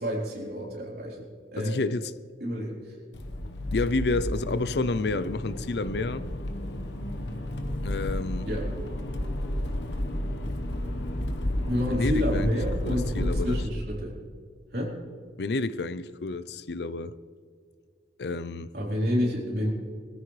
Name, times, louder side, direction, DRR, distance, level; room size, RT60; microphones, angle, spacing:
voice 1, 0.0-1.8 2.4-3.0 8.4-8.7 11.7-14.2 14.7-15.0 18.7-19.7, equal, 60° right, 3.9 m, -29 dB
voice 2, 1.6-2.1 3.7-6.3 7.8-8.5 11.9-12.5 12.8-13.6 15.4-17.2 18.2-18.7, left 3 dB, 70° left, 0.6 m, -30 dB
Accelerating revving vroom, 3.1-13.6, left 1 dB, 85° left, 1.2 m, -31 dB
21.5 x 14.0 x 3.3 m
head